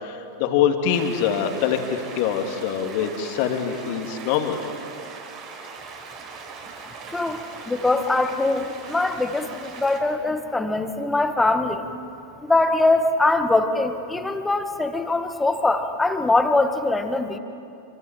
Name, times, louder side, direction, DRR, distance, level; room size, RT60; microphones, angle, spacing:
voice 1, 0.0-4.6, left 8 dB, 45° left, 5 dB, 2.7 m, -24 dB
sound 1, 0.9-10.0, right 5 dB, 35° right, 5.0 m, -40 dB
voice 2, 7.1-11.9 12.4-17.4, left 2 dB, 10° left, 8 dB, 1.8 m, -22 dB
27.0 x 26.0 x 7.7 m, 2.7 s
figure-of-eight pair, 90°, 0 cm